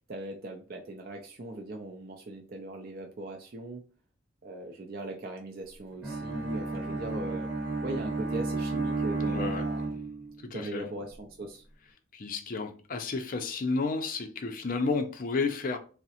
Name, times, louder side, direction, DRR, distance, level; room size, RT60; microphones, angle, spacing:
voice 1, 0.1-3.8 4.4-7.5 7.8-10.0 10.5-11.6, right 2 dB, 45° right, 0.4 m, -39 dB
Bowed string instrument, 6.0-10.4, right 3 dB, 10° right, 0.8 m, -32 dB
voice 2, 9.3-9.6 10.4-10.8 12.1-15.8, left 4 dB, 40° left, 0.4 m, -31 dB
3.6 x 2.1 x 2.8 m
head